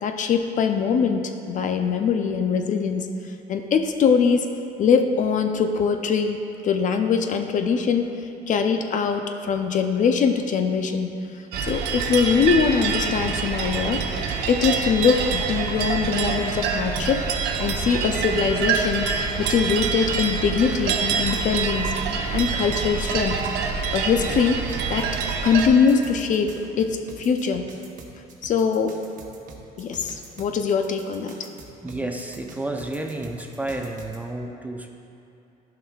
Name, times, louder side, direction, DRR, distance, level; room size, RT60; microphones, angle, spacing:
voice 1, 0.0-4.5 4.8-6.4 6.6-11.1 11.6-14.0 14.5-17.2 17.6-19.1 19.4-21.9 22.3-23.4 23.9-24.6 24.9-25.1 25.4-27.7 28.4-29.0 29.8-31.3, left 6 dB, 50° left, 6 dB, 0.5 m, -22 dB
sound 1, 11.5-25.7, right 5 dB, 75° right, 0.7 m, -26 dB
sound 2, 24.7-34.2, right 4 dB, 50° right, 1.0 m, -44 dB
voice 2, 31.8-34.9, right 2 dB, 10° right, 3 dB, 0.5 m, -31 dB
11.5 x 5.8 x 2.3 m, 2.7 s
cardioid pair, 110°, 17 cm